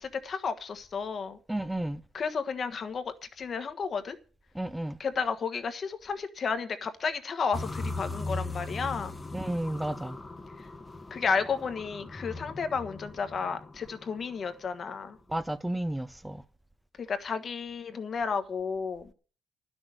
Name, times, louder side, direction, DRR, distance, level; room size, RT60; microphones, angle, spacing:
voice 1, 0.0-1.4 2.1-4.1 5.0-9.1 11.1-15.2 17.0-19.1, left 5 dB, 50° left, 1.3 m, -32 dB
voice 2, 1.5-2.0 4.5-5.0 9.3-10.2 15.3-16.4, right 1 dB, 5° right, 0.6 m, -32 dB
sound 1, 7.5-14.6, left 2 dB, 20° left, 1.0 m, -39 dB
11.0 x 6.3 x 9.0 m
cardioid pair, 90°, 0 cm